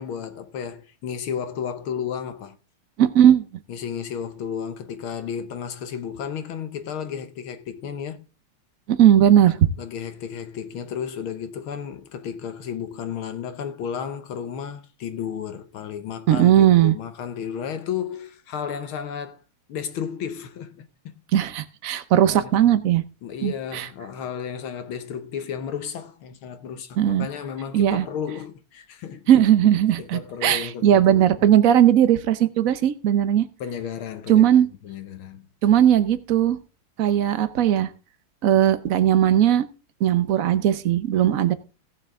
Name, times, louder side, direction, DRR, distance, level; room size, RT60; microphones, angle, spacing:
voice 1, 0.0-2.6 3.7-8.2 9.8-19.4 19.7-20.9 22.3-22.8 23.2-29.3 30.0-31.3 33.6-34.5 34.8-35.5, left 8 dB, 75° left, 1.8 m, -33 dB
voice 2, 3.0-3.5 8.9-9.6 16.3-16.9 21.3-23.0 23.4-23.9 27.0-27.3 27.7-28.1 29.3-33.5 34.3-34.7 35.6-36.6 37.0-37.9 38.4-39.6 40.0-41.5, right 10 dB, 60° right, 0.9 m, -18 dB
17.0 x 6.8 x 3.7 m
omnidirectional pair, 2.4 m